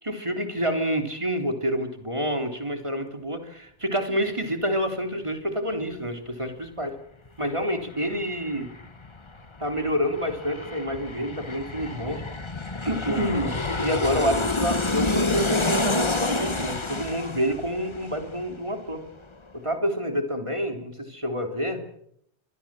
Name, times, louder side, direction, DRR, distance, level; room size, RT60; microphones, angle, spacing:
voice 1, 0.0-7.0 7.4-8.7 9.6-12.2 12.9-19.0 19.5-21.8, equal, 25° right, 5 dB, 3.5 m, -28 dB
Aircraft, 7.3-7.4 7.6-18.9 19.2-19.3, left 2 dB, 25° left, 1.3 m, -29 dB
26.5 x 23.0 x 7.6 m, 0.74 s
omnidirectional pair, 1.2 m